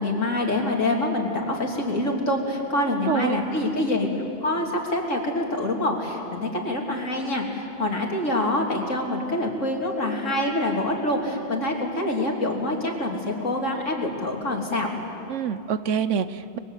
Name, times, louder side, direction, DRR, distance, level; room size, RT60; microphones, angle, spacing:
voice 1, 0.0-14.9, left 1 dB, 75° left, 0 dB, 3.6 m, -26 dB
voice 2, 2.9-3.4 15.3-16.6, right 7 dB, 75° right, 13 dB, 1.2 m, -26 dB
29.0 x 22.0 x 8.3 m, 2.8 s
omnidirectional pair, 1.3 m